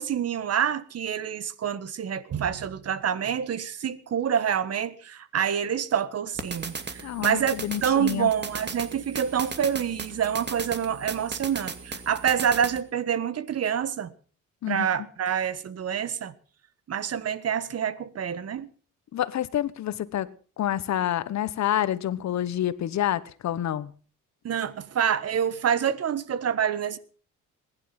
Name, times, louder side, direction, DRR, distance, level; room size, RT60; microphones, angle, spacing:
voice 1, 0.0-14.1 14.7-16.3 16.9-18.7 24.4-27.0, right 8 dB, 55° right, 1.5 m, -27 dB
sound 1, 6.3-12.8, right 4 dB, 35° right, 2.5 m, -37 dB
voice 2, 7.0-8.3 14.6-14.9 19.1-20.3 20.6-23.9, left 11 dB, 65° left, 1.2 m, -28 dB
20.5 x 11.5 x 6.0 m
cardioid pair, 90°, 30 cm